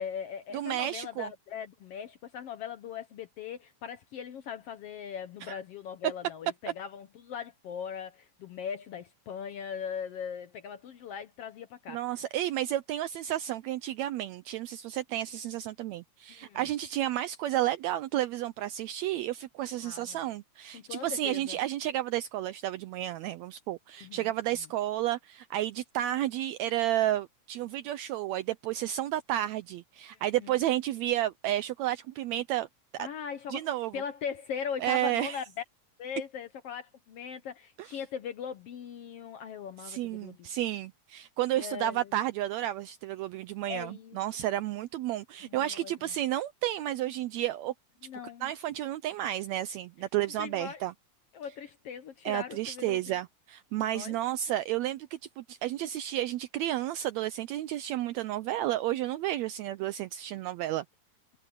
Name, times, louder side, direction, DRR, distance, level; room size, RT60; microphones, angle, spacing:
voice 1, 0.0-12.0 16.4-16.6 19.8-20.2 20.7-21.6 24.0-24.3 30.4-30.6 33.0-33.6 33.9-35.4 36.0-40.5 41.6-42.1 43.6-44.2 45.4-45.9 48.0-48.5 50.4-50.8 51.3-53.2 53.9-54.2, left 7 dB, 70° left, 1.5 m, -39 dB
voice 2, 0.5-1.3 5.4-5.6 6.0-6.1 11.9-32.7 32.9-33.1 33.5-34.0 34.8-35.4 37.8-37.9 39.8-47.7 48.4-50.9 52.2-60.8, right 13 dB, 85° right, 1.6 m, -32 dB
omnidirectional pair, 3.6 m